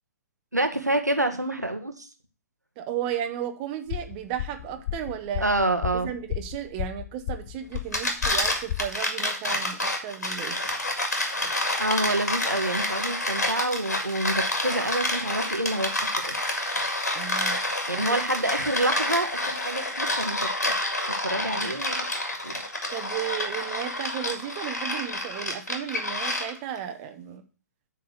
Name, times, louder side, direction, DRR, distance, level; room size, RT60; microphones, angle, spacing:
voice 1, 0.5-2.1 5.4-6.1 11.8-15.9 16.2-16.5 17.9-20.7 21.2-22.0 22.4-22.6, right 1 dB, 90° right, 6 dB, 1.3 m, -27 dB
voice 2, 2.8-5.4 6.0-10.6 17.1-17.6 17.9-18.0 21.4-21.7 22.9-27.4, right 10 dB, 30° right, 6 dB, 0.9 m, -34 dB
sound 1, 3.9-8.9, left 12 dB, 35° left, 1.0 m, -33 dB
sound 2, 7.7-26.8, left 1 dB, 75° left, 2.1 m, -28 dB
9.3 x 3.7 x 6.4 m, 0.36 s
figure-of-eight pair, 120°, 9 cm